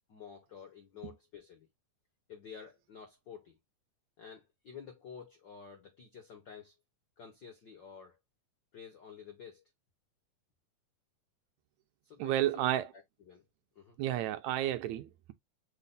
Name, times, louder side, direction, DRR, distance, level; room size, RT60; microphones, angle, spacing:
voice 1, 0.1-1.7 2.3-3.6 4.2-6.7 7.2-8.2 8.7-9.7 12.0-12.6 12.9-13.4 13.7-14.0, left 7 dB, 70° left, 1.0 m, -50 dB
voice 2, 12.2-12.9 14.0-15.3, right 13 dB, 80° right, 1.7 m, -31 dB
5.8 x 2.2 x 3.9 m
omnidirectional pair, 3.5 m